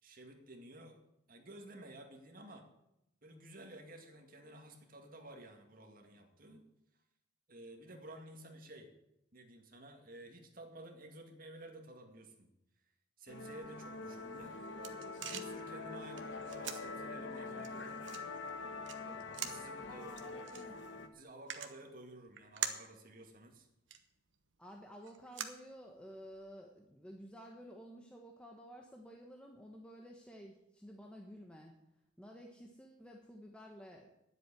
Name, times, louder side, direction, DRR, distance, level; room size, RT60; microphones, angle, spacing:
voice 1, 0.0-1.0 1.3-2.6 3.2-6.6 7.5-8.9 9.3-12.5 13.2-14.6 15.3-18.0 19.0-20.3 21.1-23.7, right 1 dB, 45° right, 3 dB, 2.2 m, -53 dB
Musical instrument, 13.3-21.1, left 3 dB, 65° left, 1.2 m, -45 dB
sound 1, 14.3-26.3, right 9 dB, 75° right, 1.2 m, -47 dB
voice 2, 19.8-20.8 24.6-31.8 32.2-34.1, equal, 5° left, 1 dB, 1.1 m, -53 dB
10.5 x 8.0 x 9.9 m, 0.84 s
head